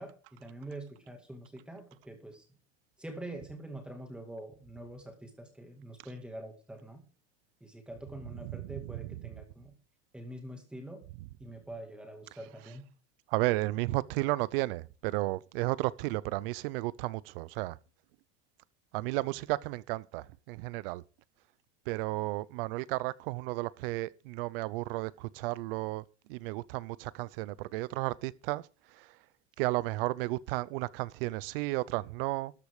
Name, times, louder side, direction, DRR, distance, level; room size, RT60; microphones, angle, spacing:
voice 1, 0.0-2.4 3.0-7.0 7.6-9.8 10.1-11.0 11.4-12.9, right 1 dB, 5° right, 2.1 m, -45 dB
voice 2, 8.4-9.1 13.3-17.8 18.9-21.0 21.9-26.0 26.3-28.6 29.6-32.5, right 20 dB, 60° right, 0.6 m, -33 dB
13.0 x 8.3 x 4.9 m
supercardioid pair, 165°, 33 cm